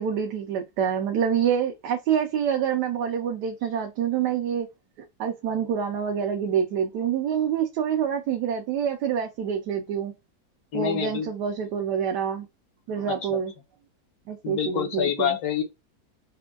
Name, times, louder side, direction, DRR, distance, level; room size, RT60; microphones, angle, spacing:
voice 1, 0.0-4.7 5.2-10.1 10.7-12.5 12.9-13.5 14.3-15.4, right 8 dB, 85° right, 1.2 m, -26 dB
voice 2, 10.7-11.3 13.1-13.4 14.4-15.6, left 8 dB, 70° left, 1.2 m, -27 dB
4.3 x 2.2 x 2.3 m
omnidirectional pair, 1.8 m